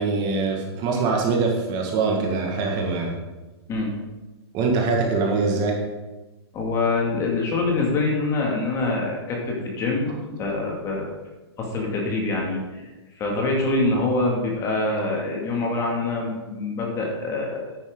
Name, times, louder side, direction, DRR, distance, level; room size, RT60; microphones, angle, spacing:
voice 1, 0.0-3.1 4.5-5.8, right 4 dB, 30° right, 1 dB, 1.9 m, -23 dB
voice 2, 6.5-11.1 11.6-17.7, left 2 dB, 20° left, -1 dB, 2.2 m, -25 dB
10.0 x 9.0 x 3.9 m, 1.1 s
hypercardioid pair, 145°, 14 cm